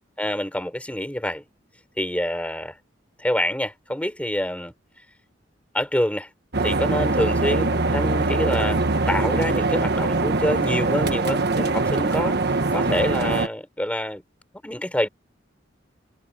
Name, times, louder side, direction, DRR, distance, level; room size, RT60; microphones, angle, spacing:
voice 1, 0.2-1.4 2.0-2.7 3.2-4.7 5.7-6.3 6.6-12.4 12.7-14.2 14.6-15.1, left 1 dB, 5° left, 4.9 m, -26 dB
sound 1, 6.5-13.5, right 3 dB, 60° right, 1.4 m, -22 dB
head